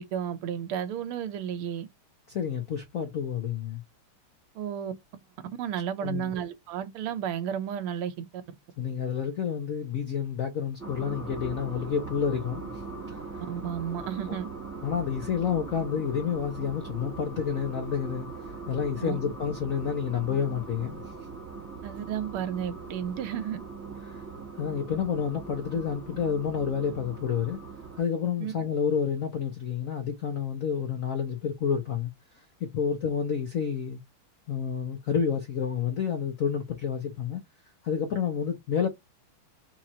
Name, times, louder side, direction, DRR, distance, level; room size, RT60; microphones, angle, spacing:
voice 1, 0.0-1.9 4.5-4.9 5.6-8.4 13.5-14.5 19.0-19.2 21.8-23.6 28.4-28.5, right 9 dB, 80° right, 1.7 m, -32 dB
voice 2, 2.3-3.8 6.0-6.3 8.8-12.8 13.1-13.2 14.8-18.3 18.7-21.0 24.1-24.2 24.6-27.6 28.0-32.1 32.6-34.0 34.5-37.4 37.8-38.9, left 7 dB, 55° left, 1.0 m, -29 dB
sound 1, 10.8-28.0, right 4 dB, 10° right, 0.9 m, -41 dB
4.4 x 2.5 x 4.3 m
omnidirectional pair, 2.4 m